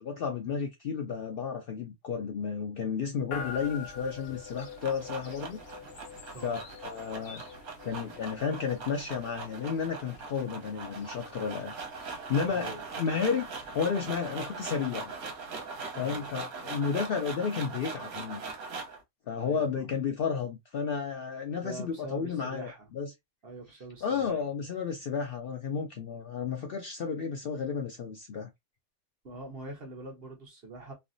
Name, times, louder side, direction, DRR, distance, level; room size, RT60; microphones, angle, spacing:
voice 1, 0.0-5.6 6.4-7.4 7.8-11.7 12.3-15.1 16.0-18.4 19.3-23.1 24.0-28.5, left 6 dB, 80° left, 0.5 m, -32 dB
sound 1, 3.3-16.3, left 5 dB, 55° left, 0.8 m, -47 dB
sound 2, 4.4-19.0, right 4 dB, 85° right, 1.3 m, -41 dB
voice 2, 6.3-6.7 12.5-12.9 15.9-16.3 19.4-20.0 21.6-22.9 23.4-24.4 29.2-30.9, right 1 dB, 45° right, 1.0 m, -44 dB
3.2 x 2.1 x 2.5 m
omnidirectional pair, 1.5 m